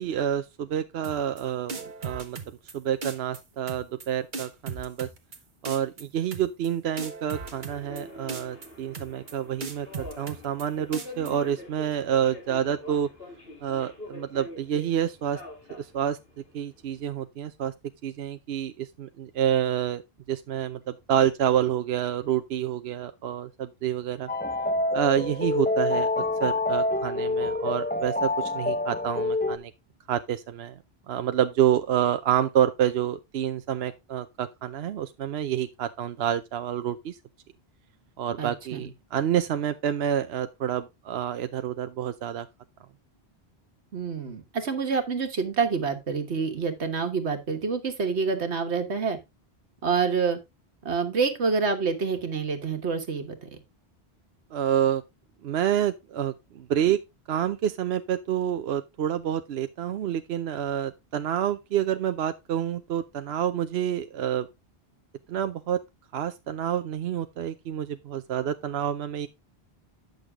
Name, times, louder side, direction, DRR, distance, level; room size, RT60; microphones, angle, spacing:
voice 1, 0.0-1.7 2.0-2.4 2.7-5.1 5.6-13.1 13.6-15.4 15.7-16.2 16.5-17.7 18.0-20.0 20.3-24.3 24.9-26.1 26.4-29.7 30.1-30.8 31.1-37.2 38.2-42.5 54.5-55.0 55.4-57.0 57.3-64.5 65.3-65.8 66.1-69.3, right 10 dB, 75° right, 0.9 m, -28 dB
sound 1, 1.0-1.4 1.7-2.7 3.0-3.4 3.7-4.1 4.3-5.4 5.6-6.0 6.3-6.7 7.0-8.0 8.3-8.7 8.9-9.3 9.6-10.6 10.9-11.3, right 4 dB, 50° right, 1.3 m, -36 dB
Subway metro underground, 7.3-17.1, left 1 dB, 60° left, 2.9 m, -45 dB
sound 2, 24.3-29.6, left 2 dB, 10° left, 0.5 m, -27 dB
voice 2, 38.4-38.9 43.9-49.2 49.8-50.4 50.8-53.6, right 5 dB, 90° right, 1.7 m, -27 dB
9.6 x 6.5 x 3.5 m
omnidirectional pair, 1.1 m